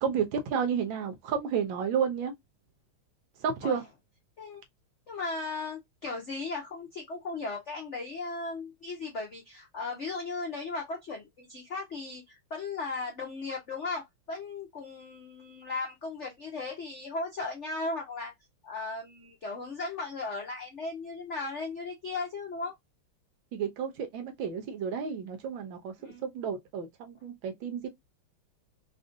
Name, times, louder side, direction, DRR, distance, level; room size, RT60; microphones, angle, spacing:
voice 1, 0.0-2.3 3.4-3.8 23.5-27.9, right 7 dB, 75° right, 1.3 m, -31 dB
voice 2, 5.1-18.3 18.6-22.7 26.0-26.2, left 3 dB, 65° left, 0.7 m, -36 dB
3.5 x 2.5 x 2.5 m
omnidirectional pair, 2.3 m